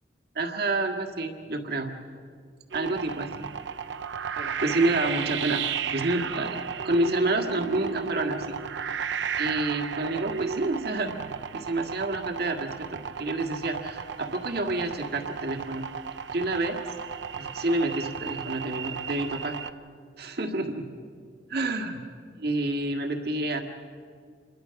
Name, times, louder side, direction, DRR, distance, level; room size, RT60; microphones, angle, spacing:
voice 1, 0.4-1.9 2.7-3.5 4.4-5.6 5.9-8.6 9.4-11.1 11.5-15.9 16.3-16.8 17.4-19.6 20.2-20.8 21.5-22.0 22.4-23.6, right 2 dB, 65° right, 4 dB, 1.9 m, -29 dB
sound 1, 2.7-19.7, right 7 dB, 80° right, 0.7 m, -34 dB
26.5 x 22.0 x 5.8 m, 2.2 s
head